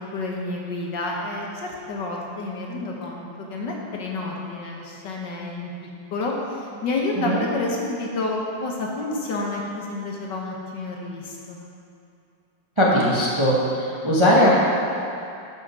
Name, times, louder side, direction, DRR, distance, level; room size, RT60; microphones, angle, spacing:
voice 1, 0.1-5.7 6.1-11.6, left 2 dB, 60° left, -1 dB, 1.6 m, -29 dB
voice 2, 12.8-14.5, equal, 20° right, -6 dB, 0.9 m, -19 dB
8.9 x 6.4 x 6.0 m, 2.5 s
omnidirectional pair, 2.3 m